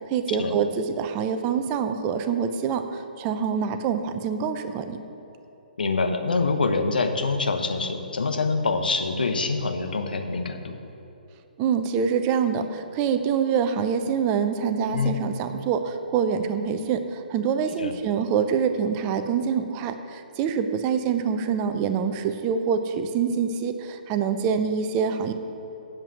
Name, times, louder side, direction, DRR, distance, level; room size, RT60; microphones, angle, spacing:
voice 1, 0.0-5.0 11.6-25.3, right 7 dB, 30° right, 8 dB, 0.6 m, -25 dB
voice 2, 5.8-10.8 14.9-15.2 17.8-17.9, left 4 dB, 70° left, 6 dB, 1.0 m, -25 dB
7.6 x 7.6 x 7.7 m, 2.9 s
figure-of-eight pair, 130°, 5 cm